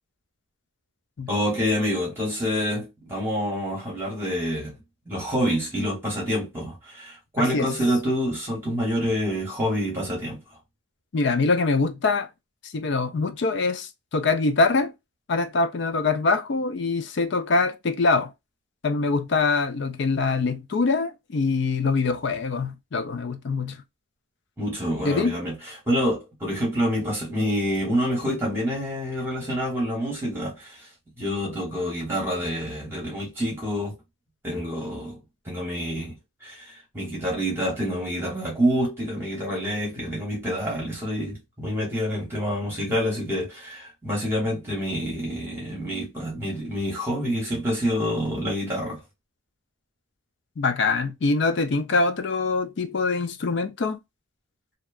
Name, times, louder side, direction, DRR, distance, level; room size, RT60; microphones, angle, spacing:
voice 1, 1.3-4.7 5.1-10.4 24.6-30.9 31.2-34.0 34.4-35.2 35.4-49.0, equal, 10° right, 1.0 m, -27 dB
voice 2, 7.4-7.7 11.1-12.3 12.6-14.9 15.3-18.3 18.8-23.8 25.0-25.4 50.6-54.0, left 3 dB, 55° left, 0.4 m, -24 dB
2.7 x 2.2 x 2.3 m
head